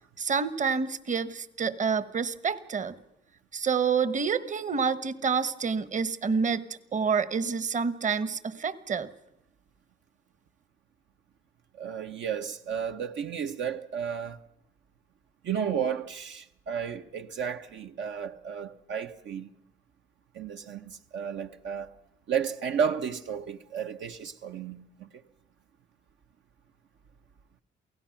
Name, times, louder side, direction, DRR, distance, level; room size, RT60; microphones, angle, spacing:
voice 1, 0.2-2.9 3.5-6.7 6.9-9.1, right 5 dB, 40° right, 1.2 m, -28 dB
voice 2, 11.8-14.4 15.4-19.5 20.3-21.9 22.3-25.1, right 7 dB, 70° right, 0.9 m, -33 dB
28.5 x 17.0 x 5.9 m
cardioid pair, 90°, 20 cm